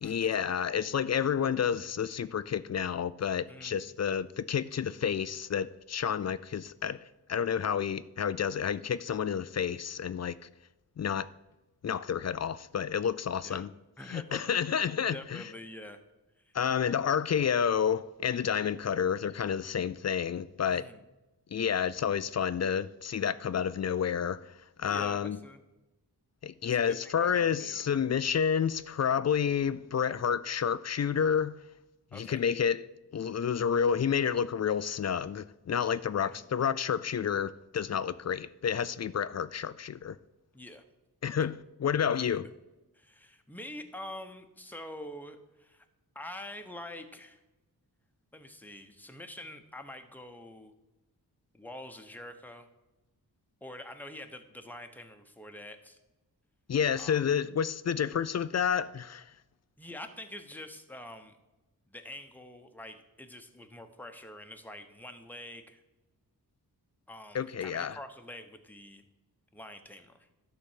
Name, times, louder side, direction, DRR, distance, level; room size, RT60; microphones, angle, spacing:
voice 1, 0.0-7.0 7.3-10.4 11.0-11.3 11.8-13.7 14.1-15.4 16.5-20.9 21.5-24.5 24.8-25.4 26.4-31.5 32.1-32.8 33.1-40.2 41.2-42.5 56.7-59.2 67.3-68.0, left 7 dB, 45° left, 0.4 m, -30 dB
voice 2, 3.5-3.9 13.4-13.6 14.0-14.5 15.1-16.0 16.5-16.6 20.7-21.1 24.8-25.6 26.6-27.9 32.1-32.4 36.2-36.5 40.5-40.8 42.9-45.9 46.1-47.4 48.3-50.7 51.5-52.7 53.6-56.0 57.0-57.2 59.8-61.4 61.9-65.8 67.1-69.0 69.5-70.3, left 1 dB, 5° left, 1.0 m, -46 dB
12.0 x 4.1 x 7.4 m
wide cardioid pair, 80°, 39 cm